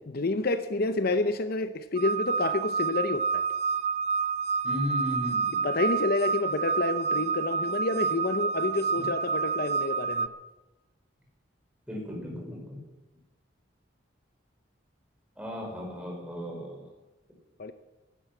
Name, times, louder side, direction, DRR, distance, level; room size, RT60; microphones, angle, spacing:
voice 1, 0.1-3.4 5.6-10.3 17.6-17.7, left 2 dB, 55° left, 10 dB, 0.7 m, -29 dB
sound 1, 2.0-10.3, right 5 dB, 35° right, 0.5 m, -29 dB
voice 2, 4.6-5.6 9.0-9.1 11.9-12.8 15.4-16.8, left 1 dB, 5° right, -1 dB, 5.1 m, -35 dB
16.0 x 13.0 x 6.0 m, 1.1 s
head